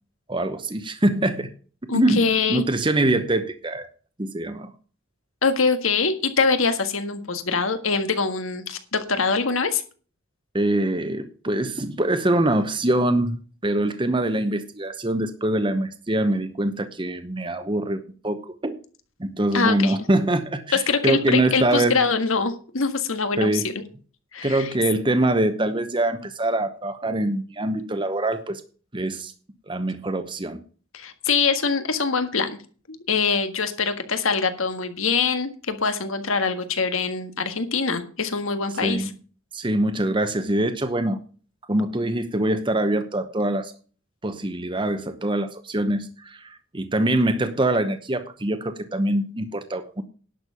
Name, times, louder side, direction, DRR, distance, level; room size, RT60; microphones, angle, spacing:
voice 1, 0.3-1.5 1.9-3.9 4.2-4.7 10.5-18.8 19.2-22.0 23.4-23.7 24.4-28.6 28.9-29.3 29.7-30.6 38.8-39.1 39.5-41.2 41.7-43.7 44.2-50.0, right 1 dB, 25° right, 9 dB, 0.9 m, -24 dB
voice 2, 1.9-2.6 5.4-9.8 19.5-20.0 20.7-23.5 24.3-24.7 30.9-32.6 32.9-39.1, left 4 dB, 75° left, 8 dB, 1.7 m, -23 dB
11.0 x 6.6 x 6.9 m, 0.39 s
head